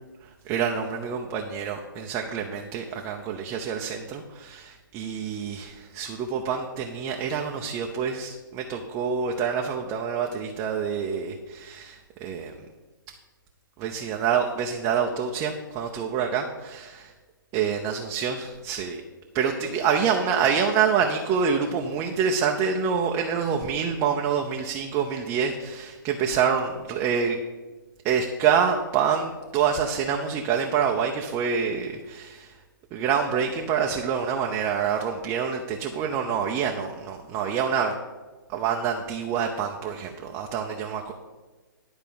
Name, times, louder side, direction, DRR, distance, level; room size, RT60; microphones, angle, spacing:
voice 1, 0.2-12.5 13.8-17.1 17.5-19.0 19.3-27.4 28.0-32.6 32.9-37.9 38.5-41.1, right 7 dB, 25° right, 2 dB, 0.7 m, -26 dB
11.5 x 4.4 x 7.0 m, 1.3 s
hypercardioid pair, 140°, 12 cm